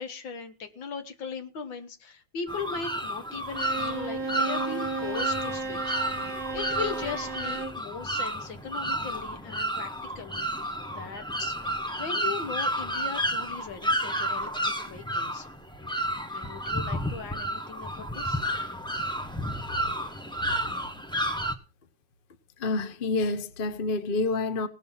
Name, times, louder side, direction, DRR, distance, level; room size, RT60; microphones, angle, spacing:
voice 1, 0.0-6.3 6.5-9.9 10.2-10.5 10.9-15.5 16.3-18.4, left 5 dB, 65° left, 2.1 m, -38 dB
sound 1, 2.5-21.5, equal, 5° left, 0.5 m, -31 dB
Bowed string instrument, 3.5-7.8, right 3 dB, 35° right, 0.9 m, -34 dB
voice 2, 22.6-24.7, left 3 dB, 35° left, 0.9 m, -28 dB
18.5 x 6.4 x 5.7 m
omnidirectional pair, 2.3 m